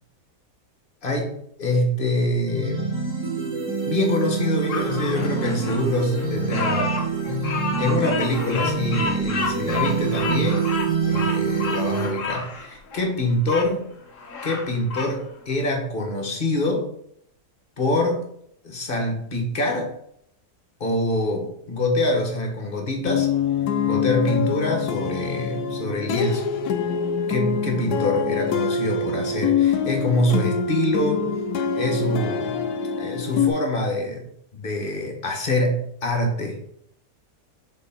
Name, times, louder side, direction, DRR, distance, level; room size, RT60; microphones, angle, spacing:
voice 1, 1.0-1.3 1.6-2.9 3.8-7.0 7.8-10.7 11.1-13.9 14.4-16.9 17.8-18.3 18.6-20.0 20.8-23.3 23.9-26.5 27.3-31.3 31.7-32.7 33.0-34.3 34.5-36.6, left 1 dB, 35° left, 3 dB, 1.5 m, -25 dB
sound 1, 2.5-12.1, right 4 dB, 10° right, 1.4 m, -26 dB
Bird vocalization bird call bird song, 4.7-13.7 14.1-15.2, left 4 dB, 55° left, 1.2 m, -31 dB
sound 2, 23.1-33.5, left 6 dB, 70° left, 1.2 m, -25 dB
6.4 x 4.4 x 4.4 m, 0.70 s
omnidirectional pair, 1.8 m